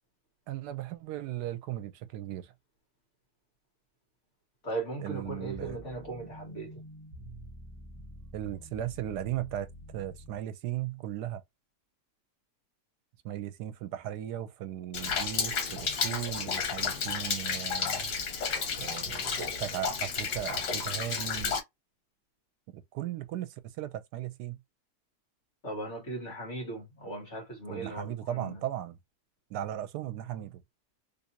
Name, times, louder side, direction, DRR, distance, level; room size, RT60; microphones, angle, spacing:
voice 1, 0.5-2.5 5.0-5.8 8.3-9.7 9.9-11.4 13.2-18.1 18.8-21.6 22.7-24.6 27.7-29.0 29.5-30.6, right 12 dB, 80° right, 1.2 m, -37 dB
voice 2, 4.6-6.8 25.6-28.6, right 2 dB, 45° left, 1.8 m, -38 dB
sound 1, 5.2-10.4, equal, 10° left, 1.0 m, -47 dB
Rain, 14.9-21.6, left 5 dB, 90° left, 1.7 m, -32 dB
3.5 x 2.7 x 2.7 m
omnidirectional pair, 1.7 m